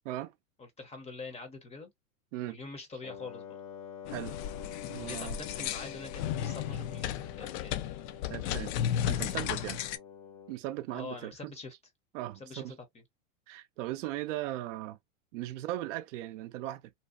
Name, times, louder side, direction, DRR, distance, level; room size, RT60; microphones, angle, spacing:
voice 1, 0.6-1.9 2.4-3.6 5.0-7.8 10.9-11.7 12.4-13.0, left 3 dB, 15° left, 0.6 m, -45 dB
Wind instrument woodwind instrument, 3.0-10.6, left 8 dB, 85° left, 0.8 m, -47 dB
sound 1, 4.1-10.0, left 10 dB, 60° left, 0.5 m, -34 dB
voice 2, 4.9-5.4 8.3-8.8 9.1-9.8 10.5-11.5 12.1-12.8 13.5-15.0 15.3-16.9, right 15 dB, 70° right, 0.5 m, -38 dB
2.7 x 2.1 x 2.3 m
hypercardioid pair, 115°, 39 cm